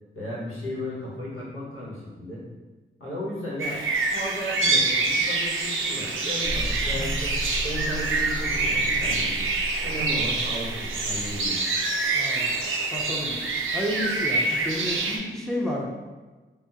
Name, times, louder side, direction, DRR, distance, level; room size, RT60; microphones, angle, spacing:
voice 1, 0.1-2.4 3.0-3.8 4.1-7.4 7.6-9.5 9.8-11.6, equal, 80° left, -6 dB, 1.0 m, -34 dB
sound 1, 3.6-15.2, right 3 dB, 70° right, 0.5 m, -26 dB
sound 2, 6.4-11.5, equal, 20° left, 0.9 m, -34 dB
voice 2, 12.1-13.4 13.7-15.9, left 1 dB, ahead, -3 dB, 0.6 m, -31 dB
3.4 x 2.0 x 2.8 m, 1.3 s
cardioid pair, 55°, 21 cm